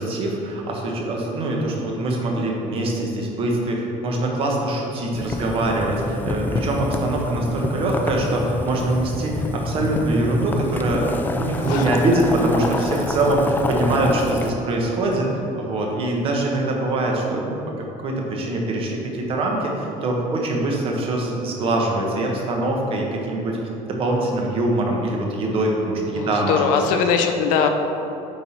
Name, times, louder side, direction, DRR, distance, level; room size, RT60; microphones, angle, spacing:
voice 1, 0.0-17.6 18.0-23.6 23.8-26.5, right 2 dB, 45° right, 0 dB, 1.2 m, -23 dB
Boiling, 5.1-14.5, left 2 dB, 15° left, 0.3 m, -27 dB
voice 2, 11.6-12.0 26.1-27.7, left 6 dB, 85° left, 5 dB, 0.7 m, -21 dB
8.6 x 3.9 x 4.2 m, 3.0 s
cardioid pair, 145°, 13 cm